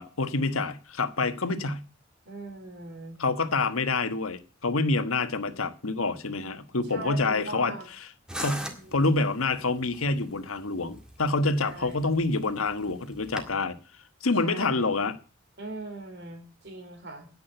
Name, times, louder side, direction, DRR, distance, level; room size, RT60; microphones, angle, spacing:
voice 1, 0.0-1.8 3.2-8.1 8.4-13.8 14.2-15.1, left 3 dB, 90° left, 1.3 m, -27 dB
voice 2, 2.3-3.2 6.9-7.9 8.6-9.0 11.6-12.1 14.4-14.9 15.6-17.3, right 2 dB, 55° right, 3.7 m, -40 dB
sound 1, 8.3-13.5, equal, 5° right, 1.9 m, -41 dB
10.5 x 8.6 x 7.9 m
head